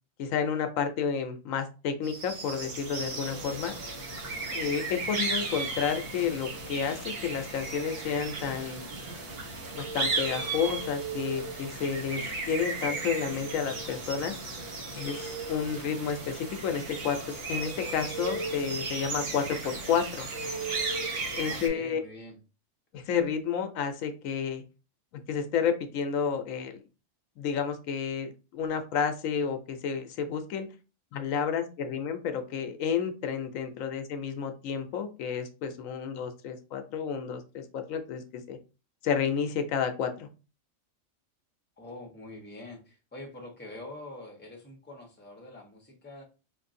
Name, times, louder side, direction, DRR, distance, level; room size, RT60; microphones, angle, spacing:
voice 1, 0.2-3.7 4.5-8.8 9.8-14.4 14.9-20.3 21.3-22.0 22.9-24.6 25.3-26.8 27.4-30.7 31.1-38.6 39.0-40.3, left 7 dB, 85° left, 7 dB, 1.0 m, -31 dB
sound 1, 2.0-21.7, right 3 dB, 50° right, 1.0 m, -35 dB
voice 2, 21.5-22.4 41.8-46.2, left 2 dB, 10° left, 0 dB, 0.9 m, -45 dB
4.8 x 2.6 x 2.6 m, 0.32 s
omnidirectional pair, 1.4 m